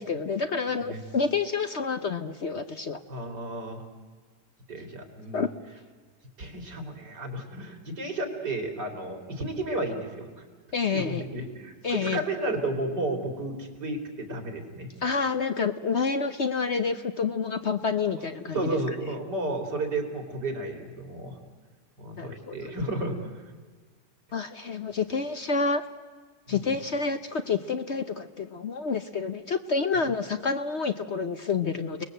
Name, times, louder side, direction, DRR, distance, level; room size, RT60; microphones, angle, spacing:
voice 1, 0.0-3.0 5.3-5.5 10.7-11.2 11.8-12.2 15.0-18.8 22.2-22.7 24.3-25.8 26.5-32.0, left 5 dB, 50° left, 9 dB, 1.0 m, -28 dB
voice 2, 3.1-3.8 4.7-5.4 6.4-10.4 10.9-14.9 18.2-21.4 22.0-23.3 26.5-26.7, right 2 dB, 75° right, 4 dB, 4.1 m, -33 dB
30.0 x 20.0 x 7.9 m, 1.5 s
omnidirectional pair, 1.8 m